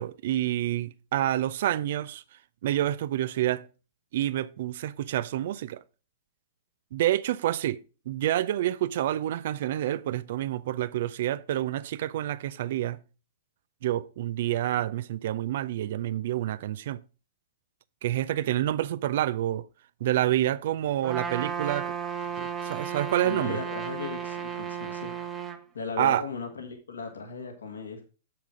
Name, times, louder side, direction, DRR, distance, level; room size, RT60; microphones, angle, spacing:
voice 1, 0.0-2.2 2.6-3.7 4.1-5.8 6.9-7.8 8.1-13.0 13.8-17.0 18.0-19.6 20.0-21.9 22.4-23.6 26.0-26.3, right 13 dB, 60° right, 0.5 m, -28 dB
Trumpet, 21.0-25.6, right 7 dB, 25° right, 1.0 m, -34 dB
voice 2, 23.2-25.1 25.7-28.0, left 5 dB, 80° left, 1.8 m, -37 dB
7.4 x 5.9 x 4.9 m
hypercardioid pair, 110°, 0 cm